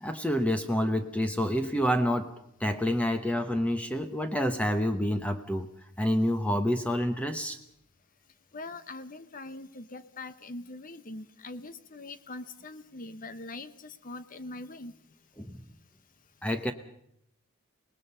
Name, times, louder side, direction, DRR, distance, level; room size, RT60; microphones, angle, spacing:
voice 1, 0.0-2.3 2.6-5.7 6.0-7.6 15.4-15.6 16.4-16.7, equal, 5° left, 7 dB, 1.0 m, -28 dB
voice 2, 8.5-14.9, left 2 dB, 40° left, 13 dB, 0.8 m, -42 dB
25.5 x 19.5 x 5.6 m, 0.73 s
head